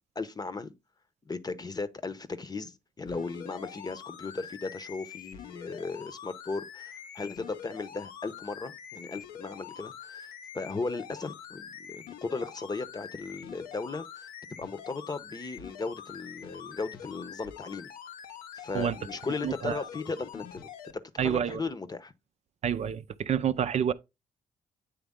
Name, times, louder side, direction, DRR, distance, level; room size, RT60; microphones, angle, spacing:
voice 1, 0.1-0.7 1.3-17.9 18.5-20.7 21.1-22.1, left 3 dB, 30° left, 0.8 m, -36 dB
sound 1, 3.0-20.9 21.5-21.6, left 9 dB, 80° left, 0.7 m, -45 dB
voice 2, 19.4-19.8 21.2-21.6 22.6-23.9, right 8 dB, 50° right, 0.5 m, -28 dB
8.4 x 3.4 x 3.6 m
supercardioid pair, 60°, 14 cm